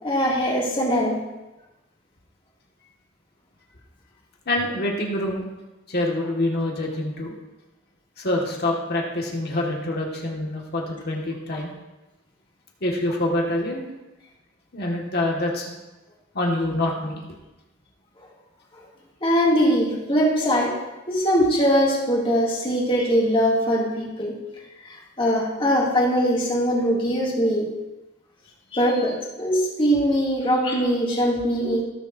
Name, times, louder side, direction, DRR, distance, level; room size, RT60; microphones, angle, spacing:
voice 1, 0.0-1.2 18.2-18.3 19.2-20.8 21.1-24.4 24.9-27.7 28.7-31.8, equal, 25° left, -4 dB, 2.4 m, -21 dB
voice 2, 4.5-5.5 5.9-7.4 8.2-11.7 12.8-13.9 14.7-15.7 16.3-17.4, left 1 dB, 55° left, -1 dB, 1.8 m, -26 dB
17.5 x 6.9 x 2.7 m, 1.0 s
head